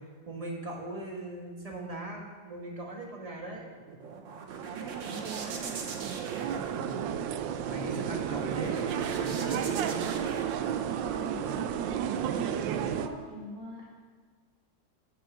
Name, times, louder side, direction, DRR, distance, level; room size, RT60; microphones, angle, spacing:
voice 1, 0.3-3.7 6.6-10.1, right 2 dB, 20° right, -1 dB, 1.2 m, -39 dB
sound 1, 3.6-11.5, right 5 dB, 55° right, 1.0 m, -43 dB
sound 2, 4.5-13.1, right 9 dB, 85° right, 1.3 m, -32 dB
voice 2, 4.6-5.7 11.0-13.8, equal, 20° left, -7 dB, 2.8 m, -43 dB
9.8 x 5.6 x 6.0 m, 1.5 s
omnidirectional pair, 2.0 m